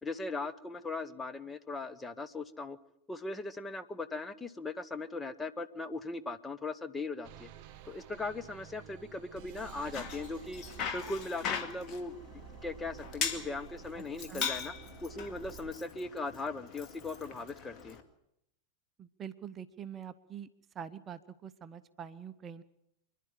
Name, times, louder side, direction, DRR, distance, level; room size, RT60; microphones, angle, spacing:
voice 1, 0.0-2.8 3.1-7.5 7.9-10.6 10.9-14.7 15.0-18.0, left 3 dB, 10° left, 10 dB, 1.0 m, -39 dB
sound 1, 7.2-15.7, right 10 dB, 40° right, 1.2 m, -51 dB
Bicycle, 9.7-18.0, left 7 dB, 35° left, 2.1 m, -40 dB
voice 2, 19.0-20.5 20.7-22.6, right 8 dB, 25° right, 12 dB, 0.7 m, -45 dB
26.5 x 11.0 x 9.7 m, 0.81 s
figure-of-eight pair, 90°, 0 cm